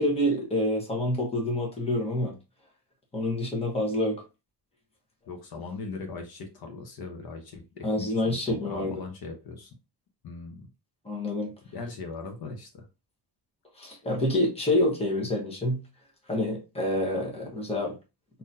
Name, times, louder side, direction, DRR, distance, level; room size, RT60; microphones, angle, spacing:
voice 1, 0.0-2.4 3.1-4.2 7.8-9.0 11.0-11.5 13.8-15.8 16.3-17.9, left 1 dB, 15° left, 1.1 m, -27 dB
voice 2, 5.3-9.7 10.2-10.7 11.7-12.9, left 4 dB, 60° left, 1.0 m, -39 dB
3.8 x 2.9 x 2.7 m
wide cardioid pair, 170°, 42 cm